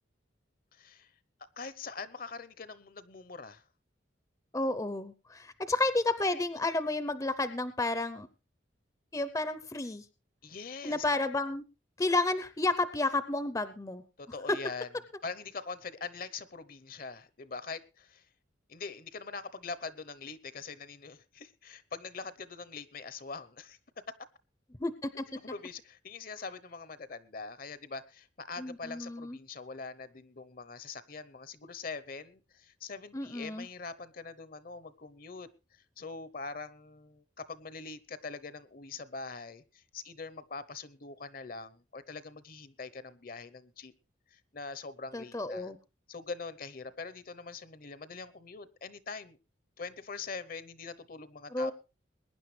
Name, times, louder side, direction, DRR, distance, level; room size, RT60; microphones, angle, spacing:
voice 1, 0.7-1.1 1.6-3.6 10.4-11.0 14.2-14.9 15.2-18.3 18.7-23.8 25.4-43.9 44.3-45.7 46.1-49.4 49.8-51.7, left 4 dB, 50° left, 0.8 m, -43 dB
voice 2, 4.5-8.3 9.1-10.0 10.8-11.6 12.0-14.0 14.5-14.6 24.8-25.2 28.6-29.4 33.1-33.7 45.1-45.8 51.5-51.7, left 2 dB, 20° left, 0.6 m, -31 dB
22.0 x 10.0 x 3.3 m
head